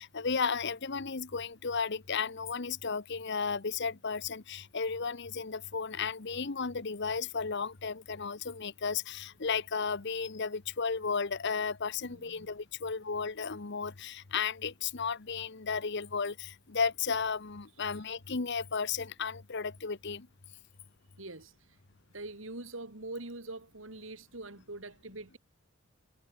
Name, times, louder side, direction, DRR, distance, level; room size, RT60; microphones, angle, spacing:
voice 1, 0.0-20.3, left 5 dB, 55° left, 1.1 m, -34 dB
voice 2, 12.0-12.5 21.2-21.5 22.1-25.4, right 2 dB, 70° right, 3.5 m, -43 dB
head